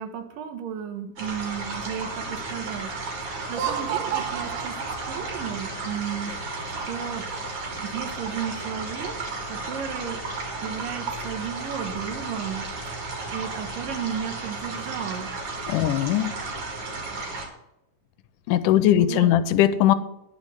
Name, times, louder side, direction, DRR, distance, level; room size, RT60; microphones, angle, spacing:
voice 1, 0.0-2.9 3.2-6.5 6.8-7.2 7.7-9.2 9.5-10.2 10.6-12.7 13.3-15.3 19.0-19.4, right 8 dB, 90° right, 7 dB, 2.9 m, -34 dB
sound 1, 1.2-17.5, right 3 dB, 45° right, 2.9 m, -33 dB
Laughter, 3.4-5.7, right 9 dB, 65° right, 1.5 m, -31 dB
voice 2, 15.7-16.3 18.5-19.9, left 12 dB, 80° left, 13 dB, 2.1 m, -20 dB
10.5 x 5.3 x 8.0 m, 0.84 s
omnidirectional pair, 3.8 m